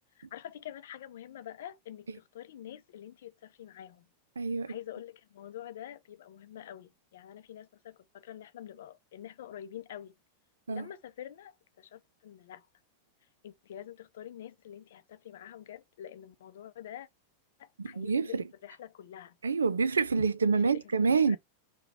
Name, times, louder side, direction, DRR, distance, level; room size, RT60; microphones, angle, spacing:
voice 1, 0.1-4.1 4.7-10.2 10.7-12.7 13.4-17.1 17.6-19.4 20.5-21.4, left 11 dB, 60° left, 0.5 m, -46 dB
voice 2, 4.4-4.7 10.7-10.8 17.8-18.4 19.4-21.4, right 5 dB, 70° right, 0.4 m, -27 dB
3.7 x 2.3 x 4.2 m
figure-of-eight pair, 90°, 0 cm